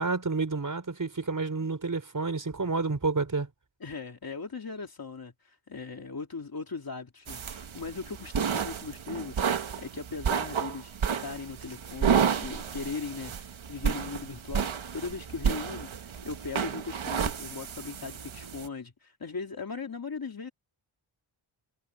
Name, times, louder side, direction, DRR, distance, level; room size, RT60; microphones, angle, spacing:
voice 1, 0.0-3.5, right 3 dB, 40° right, 4.9 m, -29 dB
voice 2, 3.8-9.4 9.8-20.5, left 4 dB, 45° left, 2.8 m, -39 dB
sound 1, 7.3-18.7, right 7 dB, 70° right, 1.5 m, -31 dB
wide cardioid pair, 95°, 49 cm